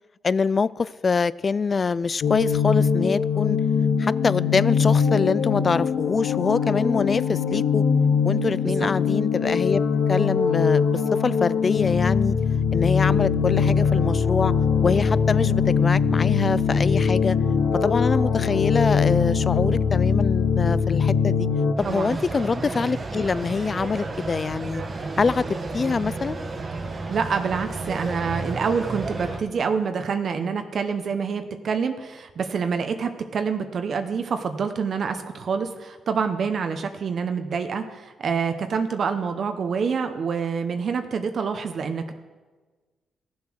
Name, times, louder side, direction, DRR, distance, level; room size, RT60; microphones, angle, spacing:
voice 1, 0.2-3.6 4.0-7.8 8.2-9.8 10.1-12.3 12.7-14.5 14.8-17.4 17.8-21.5 21.8-24.8 25.2-25.4 25.7-26.4, left 5 dB, 40° left, 0.3 m, -24 dB
sound 1, 2.2-21.7, left 6 dB, 75° left, 1.3 m, -22 dB
Cricket Ground Ambience, 21.8-29.4, right 3 dB, 40° right, 1.3 m, -32 dB
voice 2, 21.8-22.2 27.1-42.1, right 6 dB, 60° right, 0.9 m, -27 dB
15.0 x 7.2 x 6.3 m
cardioid pair, 80°, 0 cm